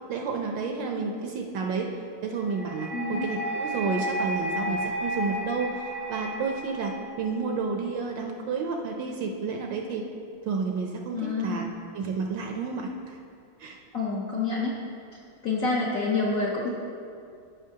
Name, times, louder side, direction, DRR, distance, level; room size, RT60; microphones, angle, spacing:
voice 1, 0.1-1.9 2.2-10.0 10.4-11.7 11.9-13.2 13.6-13.8, right 4 dB, 70° right, 2 dB, 1.2 m, -31 dB
sound 1, 2.5-7.5, equal, 35° left, 0.9 m, -33 dB
voice 2, 2.9-3.3 11.1-11.7 13.9-14.8 15.4-16.7, left 3 dB, 60° left, -4 dB, 0.9 m, -27 dB
13.0 x 5.8 x 2.8 m, 2.4 s
omnidirectional pair, 2.4 m